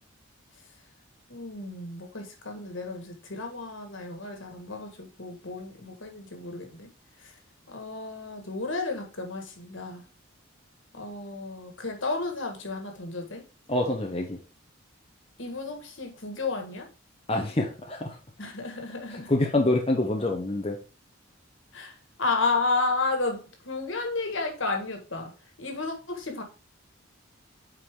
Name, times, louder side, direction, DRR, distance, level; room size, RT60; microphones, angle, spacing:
voice 1, 1.3-6.9 7.2-7.3 7.7-10.0 10.9-13.4 15.4-16.9 18.4-19.3 21.7-25.3 25.6-26.4, left 3 dB, 65° left, 4 dB, 1.8 m, -32 dB
voice 2, 13.7-14.4 17.3-18.2 19.1-20.8, left 2 dB, 30° left, 1 dB, 0.8 m, -26 dB
8.0 x 4.9 x 3.7 m, 0.35 s
head